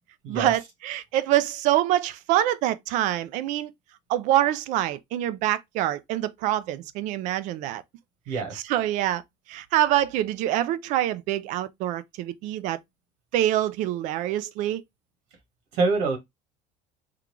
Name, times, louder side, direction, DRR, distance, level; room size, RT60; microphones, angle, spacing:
voice 1, 0.3-3.7 4.1-7.8 8.3-9.2 9.5-12.8 13.3-14.8, right 13 dB, 50° right, 0.4 m, -25 dB
voice 2, 8.3-8.6 15.7-16.2, right 3 dB, 70° right, 1.3 m, -25 dB
3.7 x 2.3 x 3.0 m
cardioid pair, 160°, 17 cm